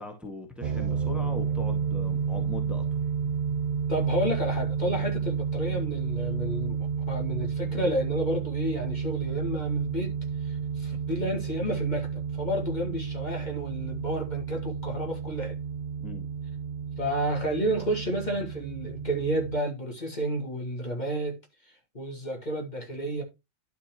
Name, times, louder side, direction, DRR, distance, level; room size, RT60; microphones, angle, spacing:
voice 1, 0.0-3.0 16.0-16.3, left 2 dB, ahead, 1.8 m, -40 dB
sound 1, 0.6-19.6, right 6 dB, 55° right, 0.5 m, -31 dB
voice 2, 3.9-6.8 7.1-10.1 10.4-15.6 17.0-23.2, right 1 dB, 35° left, 2.2 m, -31 dB
11.5 x 4.2 x 4.4 m
omnidirectional pair, 1.3 m